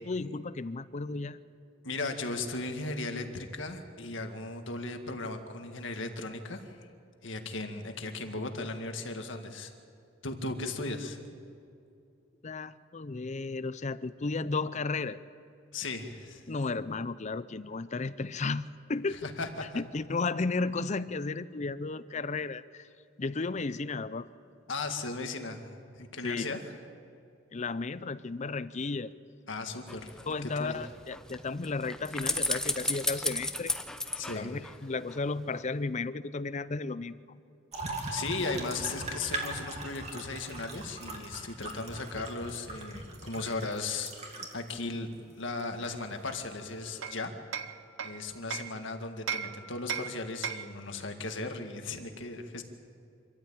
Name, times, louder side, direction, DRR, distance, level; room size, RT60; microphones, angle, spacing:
voice 1, 0.0-1.4 12.4-15.2 16.5-19.2 19.7-22.9 23.2-24.3 26.2-26.5 27.5-29.1 30.3-33.8 34.3-37.2, left 3 dB, 35° left, 15 dB, 0.5 m, -34 dB
voice 2, 1.8-6.9 7.2-9.7 10.2-11.2 15.7-16.4 19.1-19.8 24.7-26.7 29.5-30.8 34.2-34.6 38.1-44.1 44.5-47.4 47.6-47.7 48.0-52.6, left 3 dB, 65° left, 5 dB, 1.9 m, -37 dB
sound 1, 29.9-35.2 35.5-35.6, left 1 dB, 5° left, 0.8 m, -35 dB
sound 2, 37.7-44.8 45.6-45.7 46.8-47.1, right 2 dB, 35° right, 2.6 m, -40 dB
Hammer, 46.3-48.8 49.3-50.8, right 7 dB, 70° right, 0.9 m, -38 dB
26.0 x 14.0 x 8.8 m, 2.5 s
head